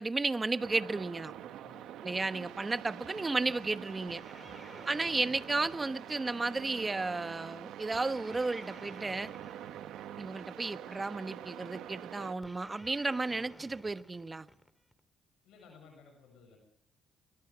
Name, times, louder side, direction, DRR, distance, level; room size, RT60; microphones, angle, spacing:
voice 1, 0.0-1.3 2.0-4.2 4.9-9.3 10.2-14.5, right 3 dB, 25° right, 1.1 m, -33 dB
sound 1, 0.6-12.3, right 11 dB, 85° right, 1.5 m, -46 dB
sound 2, 4.1-6.7 7.9-10.5 12.4-15.0, equal, 5° left, 2.7 m, -54 dB
voice 2, 4.4-4.8 15.4-16.6, left 5 dB, 90° left, 7.4 m, -57 dB
24.5 x 22.0 x 4.9 m
cardioid pair, 90°, 0 cm